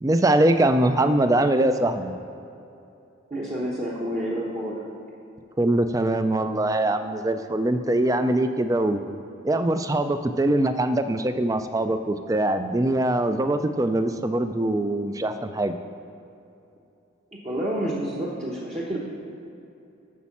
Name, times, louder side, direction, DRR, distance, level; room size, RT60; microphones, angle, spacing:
voice 1, 0.0-2.1 5.6-9.0 9.4-15.7, right 1 dB, 15° right, 9 dB, 0.3 m, -22 dB
voice 2, 3.3-4.8 17.4-19.0, right 1 dB, 30° right, -5 dB, 1.0 m, -29 dB
8.5 x 6.2 x 7.2 m, 2.8 s
head